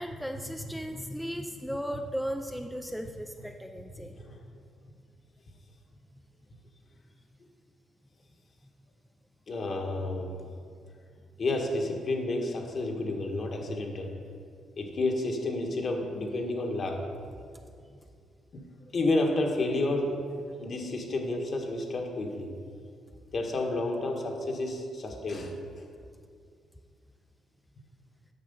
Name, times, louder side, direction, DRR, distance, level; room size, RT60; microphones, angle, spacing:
voice 1, 0.0-4.1, equal, ahead, 4 dB, 0.4 m, -36 dB
voice 2, 4.0-4.4 9.5-10.4 11.4-14.1 14.8-17.0 18.5-20.2 20.5-22.5 23.3-25.5, left 2 dB, 50° left, 2 dB, 1.4 m, -30 dB
9.4 x 6.2 x 5.4 m, 2.3 s
cardioid pair, 90°, 0 cm